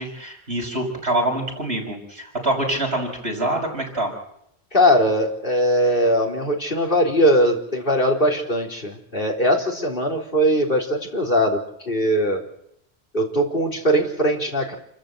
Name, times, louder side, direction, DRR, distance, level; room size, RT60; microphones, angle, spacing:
voice 1, 0.0-4.1, right 1 dB, 75° right, 0 dB, 6.4 m, -25 dB
voice 2, 4.7-12.4 13.1-14.7, equal, 55° left, 1 dB, 4.1 m, -20 dB
29.0 x 14.0 x 8.0 m, 0.76 s
omnidirectional pair, 1.1 m